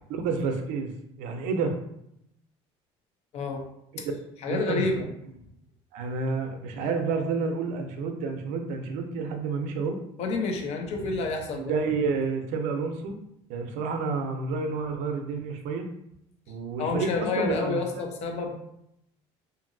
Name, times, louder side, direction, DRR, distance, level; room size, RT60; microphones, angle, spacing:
voice 1, 0.1-0.9 1.2-1.8 4.5-4.8 5.9-10.0 11.5-13.2 13.5-15.8 16.5-17.1 17.4-18.0, right 4 dB, 75° right, 5 dB, 0.6 m, -29 dB
voice 2, 4.4-5.1 10.2-11.7 16.8-18.5, left 4 dB, 55° left, 2 dB, 0.7 m, -29 dB
2.8 x 2.6 x 2.6 m, 0.78 s
supercardioid pair, 105°, 13 cm